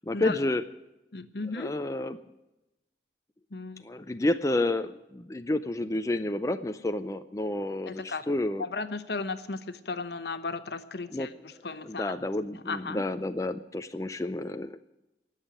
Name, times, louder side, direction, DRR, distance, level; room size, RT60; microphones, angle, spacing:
voice 1, 0.1-0.6 1.6-2.2 3.8-8.6 11.1-11.3 11.8-14.8, left 2 dB, 20° left, 8 dB, 0.5 m, -30 dB
voice 2, 1.1-1.7 3.5-3.8 7.8-8.2 8.6-12.3 12.7-13.1, left 3 dB, 65° left, 11 dB, 1.0 m, -35 dB
18.5 x 7.3 x 8.7 m, 0.97 s
head